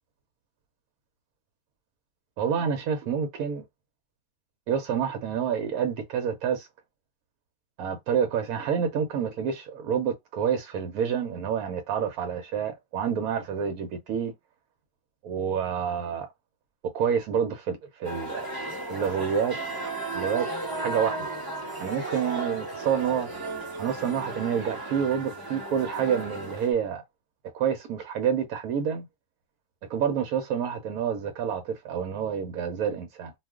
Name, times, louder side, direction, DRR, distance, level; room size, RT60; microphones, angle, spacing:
voice 1, 2.4-3.6 4.7-6.7 7.8-14.3 15.2-16.3 16.9-18.5 18.9-19.6 20.1-20.5 20.8-21.3 21.8-23.3 23.8-27.0 27.5-29.1 29.9-33.3, right 7 dB, 80° right, 1.0 m, -28 dB
sound 1, 18.0-26.7, right 2 dB, 20° right, 0.9 m, -34 dB
2.4 x 2.4 x 3.5 m
omnidirectional pair, 1.5 m